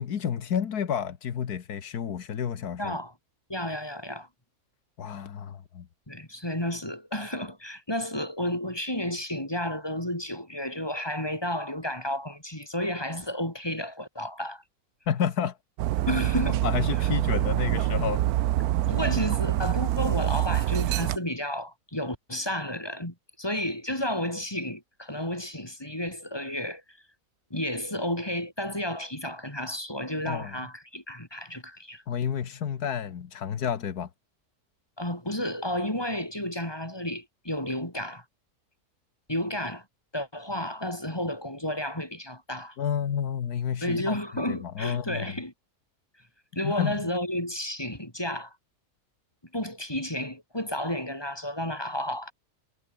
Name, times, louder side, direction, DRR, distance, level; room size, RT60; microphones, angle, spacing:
voice 1, 0.0-3.0 5.0-5.9 15.1-15.6 16.6-18.3 30.3-30.6 32.1-34.1 42.8-45.4 46.6-47.0, left 8 dB, 90° left, 1.9 m, -30 dB
voice 2, 2.8-3.1 3.5-4.3 6.1-14.6 16.1-16.6 17.0-17.1 18.9-27.0 27.5-32.0 35.0-38.2 39.3-39.8 40.1-42.8 43.8-45.5 46.5-48.5 49.5-52.3, left 1 dB, 15° left, 4.4 m, -32 dB
Dog, 15.8-21.2, right 14 dB, 80° right, 1.1 m, -25 dB
omnidirectional pair, 1.6 m